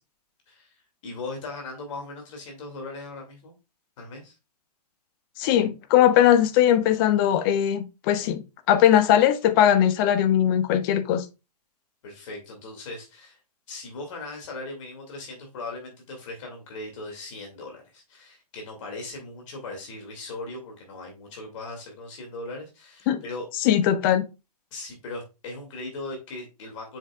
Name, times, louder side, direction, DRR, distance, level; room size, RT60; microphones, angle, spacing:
voice 1, 1.0-3.5 4.0-4.4 12.0-13.4 13.7-23.5 24.7-27.0, left 2 dB, 50° left, 2.3 m, -38 dB
voice 2, 5.4-8.4 8.7-11.2 23.1-23.2 23.6-24.2, left 10 dB, 35° left, 0.8 m, -20 dB
7.2 x 5.5 x 2.3 m
figure-of-eight pair, 120°, 20 cm